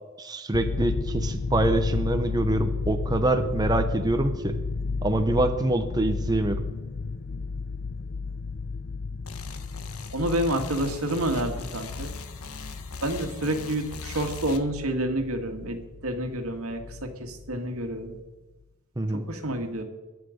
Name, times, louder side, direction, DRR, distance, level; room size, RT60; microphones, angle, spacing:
voice 1, 0.2-4.5 5.0-6.6 19.0-19.3, right 2 dB, 20° right, 6 dB, 0.8 m, -25 dB
sound 1, 0.5-17.6 17.9-18.2, left 4 dB, 45° left, 0.5 m, -33 dB
sound 2, 9.2-14.6, left 5 dB, 80° left, 1.3 m, -41 dB
voice 2, 10.1-12.1 13.0-18.2 19.1-19.8, right 1 dB, 80° right, 5 dB, 2.0 m, -29 dB
22.0 x 8.4 x 5.2 m, 1.2 s
head